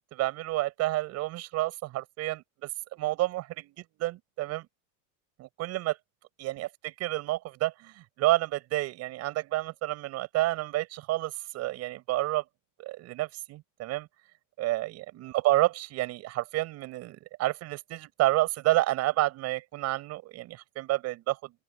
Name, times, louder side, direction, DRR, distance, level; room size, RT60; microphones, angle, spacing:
voice 1, 0.0-4.7 5.4-6.0 6.4-12.4 12.8-14.1 14.6-21.5, right 17 dB, 35° right, 7.9 m, -30 dB
open air
supercardioid pair, 170°, 44 cm